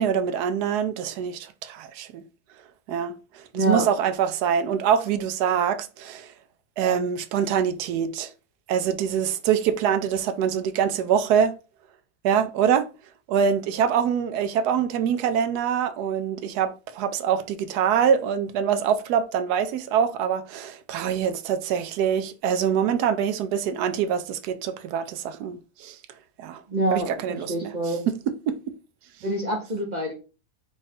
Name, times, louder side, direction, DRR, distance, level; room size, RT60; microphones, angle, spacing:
voice 1, 0.0-2.2 2.9-6.3 6.8-8.3 8.7-11.5 12.2-12.9 13.3-26.0 26.4-26.6 26.9-27.7 28.5-28.6, right 8 dB, 75° right, 1.1 m, -24 dB
voice 2, 3.5-3.9 26.7-28.0 29.2-30.1, right 1 dB, 40° right, 0.7 m, -26 dB
4.8 x 2.5 x 4.1 m
omnidirectional pair, 1.8 m